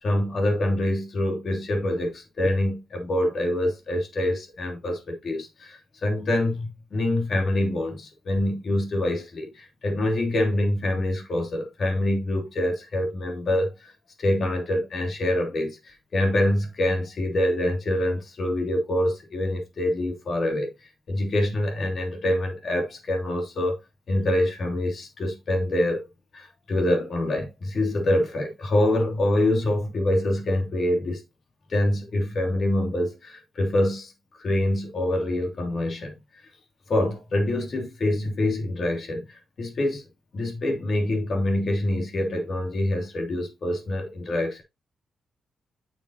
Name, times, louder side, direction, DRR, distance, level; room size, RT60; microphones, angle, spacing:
voice 1, 0.0-13.9 14.2-20.7 21.1-23.8 24.1-26.0 26.3-31.2 31.7-34.1 34.4-36.2 36.9-40.0 40.3-44.6, left 1 dB, 55° left, 3.0 m, -25 dB
9.1 x 6.2 x 2.9 m
cardioid pair, 85°, 0 cm